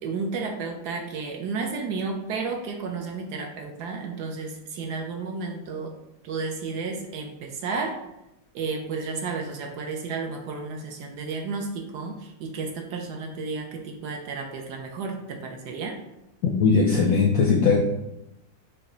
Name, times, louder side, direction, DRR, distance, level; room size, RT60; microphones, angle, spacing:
voice 1, 0.0-5.9 6.2-8.0 8.5-16.0, right 4 dB, 70° right, 2 dB, 1.1 m, -32 dB
voice 2, 16.6-17.8, left 5 dB, 75° left, 1 dB, 0.8 m, -19 dB
6.2 x 2.2 x 3.8 m, 0.89 s
omnidirectional pair, 2.0 m